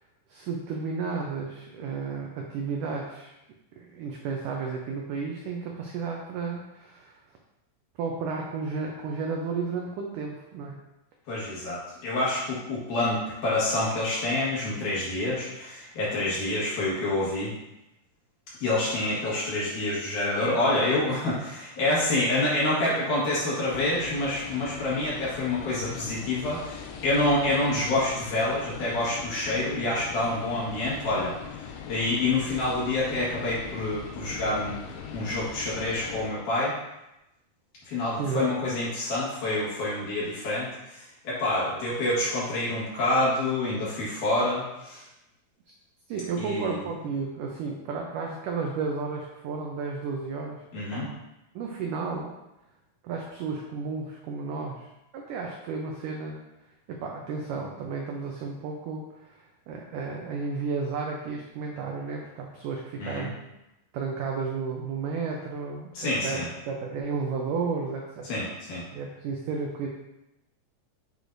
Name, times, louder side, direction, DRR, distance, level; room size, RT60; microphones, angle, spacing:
voice 1, 0.3-3.3 3.8-7.2 8.0-10.8 38.2-38.5 46.1-51.1 51.6-52.3 53.0-56.4 56.9-63.4 63.9-68.3 68.9-69.9, right 4 dB, 85° right, 0 dB, 1.8 m, -33 dB
voice 2, 11.3-17.5 18.6-31.4 31.9-34.8 35.1-36.7 37.9-45.0 46.4-46.8 50.7-51.1 63.0-63.3 65.9-66.5 68.2-68.8, left 2 dB, 60° left, -7 dB, 2.8 m, -27 dB
sound 1, 23.7-36.3, left 7 dB, 85° left, 2.6 m, -40 dB
8.3 x 4.8 x 2.6 m, 0.92 s
omnidirectional pair, 4.5 m